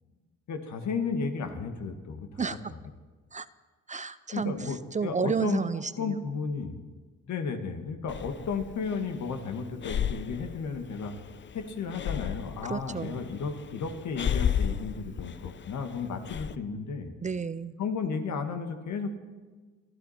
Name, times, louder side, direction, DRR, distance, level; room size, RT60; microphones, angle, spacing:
voice 1, 0.5-2.4 4.3-5.7 6.0-6.8 7.3-11.2 11.5-17.1 17.8-19.2, left 5 dB, 70° left, 6 dB, 2.0 m, -33 dB
voice 2, 2.4-2.7 3.3-3.5 3.9-6.2 12.7-13.2 17.2-17.7, right 5 dB, 25° right, 15 dB, 0.5 m, -31 dB
Breathing, 8.1-16.6, left 8 dB, 40° left, 0.7 m, -34 dB
27.0 x 11.5 x 4.4 m, 1.4 s
cardioid pair, 90°, 30 cm